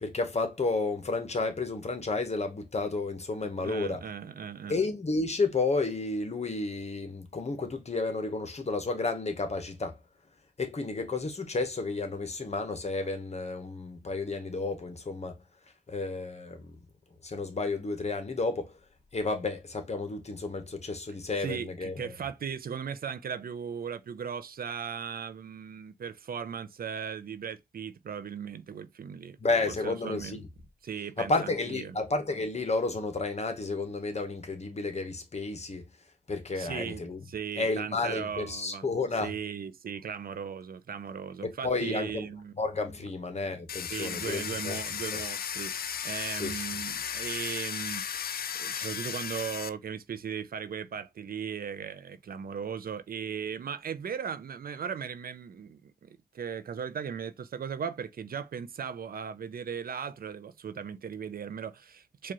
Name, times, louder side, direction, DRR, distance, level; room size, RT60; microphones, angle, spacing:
voice 1, 0.0-4.0 4.7-10.0 10.6-15.4 15.9-16.7 17.2-18.7 19.1-22.1 29.4-30.4 31.2-35.9 36.3-37.2 37.6-39.3 41.4-42.3 42.6-44.8 45.1-45.2 46.3-46.6, left 3 dB, 40° left, 1.0 m, -31 dB
voice 2, 3.6-4.8 21.4-29.4 29.8-30.4 30.8-32.0 36.5-38.9 39.2-42.5 43.9-62.3, right 7 dB, 65° right, 0.5 m, -37 dB
Domestic sounds home sounds, 43.7-49.7, left 8 dB, 65° left, 0.4 m, -35 dB
4.7 x 2.4 x 2.9 m
cardioid pair, 60°, 17 cm